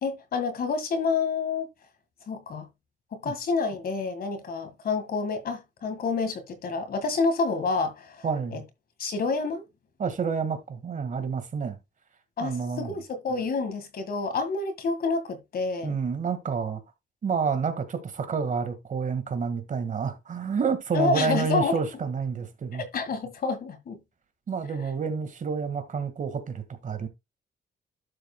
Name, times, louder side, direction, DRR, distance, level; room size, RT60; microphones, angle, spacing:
voice 1, 0.0-1.7 2.3-2.7 3.1-8.2 8.5-8.6 9.0-9.6 12.4-16.0 20.9-21.8 22.7-24.0, left 4 dB, 55° left, 1.8 m, -28 dB
voice 2, 8.2-8.6 10.0-11.8 12.4-12.9 15.8-16.8 17.2-22.8 24.5-27.1, right 5 dB, 45° right, 1.8 m, -29 dB
12.0 x 7.4 x 2.3 m
cardioid pair, 135°, 19 cm